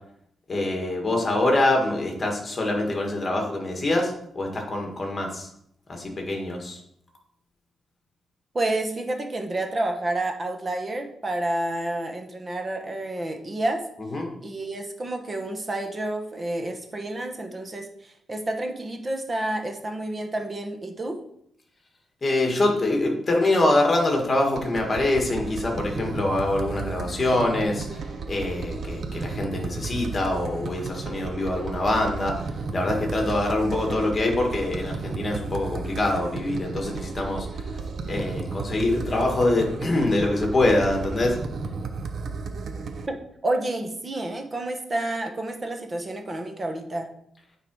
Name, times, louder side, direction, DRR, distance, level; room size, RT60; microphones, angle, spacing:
voice 1, 0.5-5.5 5.9-6.8 14.1-14.3 22.2-28.0 28.3-32.4 32.7-37.5 38.1-41.4, left 2 dB, 30° left, 1 dB, 1.8 m, -24 dB
voice 2, 8.5-13.8 14.4-21.2 43.1-47.1, right 1 dB, 30° right, 4 dB, 1.1 m, -29 dB
sound 1, 24.6-43.1, right 4 dB, 55° right, 0.7 m, -34 dB
8.9 x 3.9 x 4.6 m, 0.71 s
cardioid pair, 120°, 0 cm